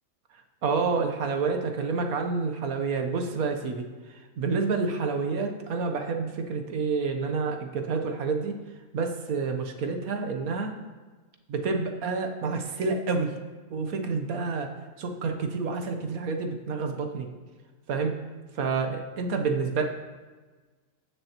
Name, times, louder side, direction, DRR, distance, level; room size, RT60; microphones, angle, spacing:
voice 1, 0.6-8.6 8.9-10.7 11.5-13.3 13.7-14.7 15.0-17.3 17.9-18.2 18.5-19.8, right 4 dB, 80° right, 5 dB, 1.4 m, -28 dB
15.5 x 6.9 x 2.9 m, 1.3 s
omnidirectional pair, 1.5 m